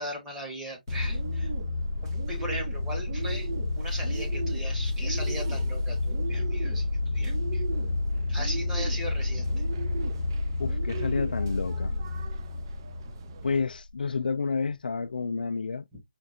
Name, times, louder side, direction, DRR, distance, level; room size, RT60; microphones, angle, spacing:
voice 1, 0.0-1.5 2.0-3.5 3.7-7.6 8.3-9.7 13.4-13.5 15.9-16.0, right 1 dB, 10° right, 1.0 m, -38 dB
sound 1, 0.9-13.7, left 2 dB, 65° left, 0.8 m, -30 dB
Bird, 0.9-13.6, right 6 dB, 25° right, 0.3 m, -41 dB
voice 2, 10.6-11.9 13.4-15.9, left 4 dB, 80° left, 0.3 m, -30 dB
5.0 x 2.5 x 2.5 m
hypercardioid pair, 160°, 5 cm